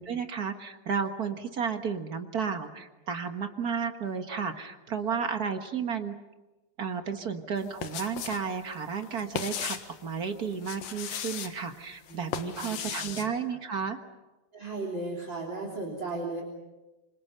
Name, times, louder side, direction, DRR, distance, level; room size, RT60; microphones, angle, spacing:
voice 1, 0.0-6.1 6.8-9.8 10.0-14.0, right 6 dB, 50° right, 6 dB, 1.1 m, -32 dB
sound 1, 7.6-8.5 8.7-10.0 10.5-11.5 12.1-13.3, left 8 dB, 90° left, 3.3 m, -36 dB
voice 2, 12.1-13.6 14.5-16.4, right 2 dB, 35° right, -2 dB, 3.9 m, -37 dB
28.0 x 26.0 x 6.8 m, 1.1 s
omnidirectional pair, 3.9 m